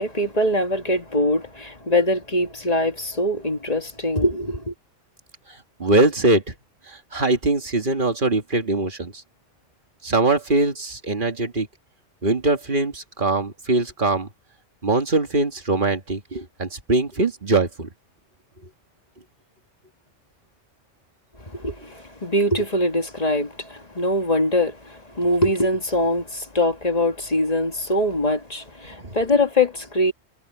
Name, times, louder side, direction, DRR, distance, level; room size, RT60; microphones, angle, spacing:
voice 1, 0.0-4.7 21.4-30.1, left 1 dB, 35° left, 2.0 m, -23 dB
voice 2, 5.8-6.5 6.9-9.1 10.0-11.7 12.2-14.3 14.8-17.9, right 2 dB, 45° right, 2.0 m, -22 dB
omnidirectional pair, 1.2 m